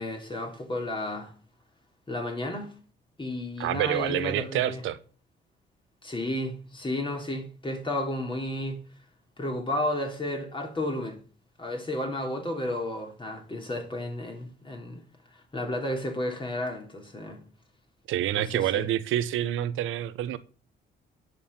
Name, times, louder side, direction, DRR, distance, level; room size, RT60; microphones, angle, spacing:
voice 1, 0.0-1.3 2.1-2.7 3.2-4.8 6.0-8.8 9.4-11.2 11.6-15.0 15.5-17.4 18.3-18.8, left 1 dB, 25° left, 3.3 m, -32 dB
voice 2, 3.6-5.0 18.1-20.4, right 12 dB, 90° right, 1.0 m, -27 dB
9.8 x 6.5 x 7.3 m
cardioid pair, 90°, 20 cm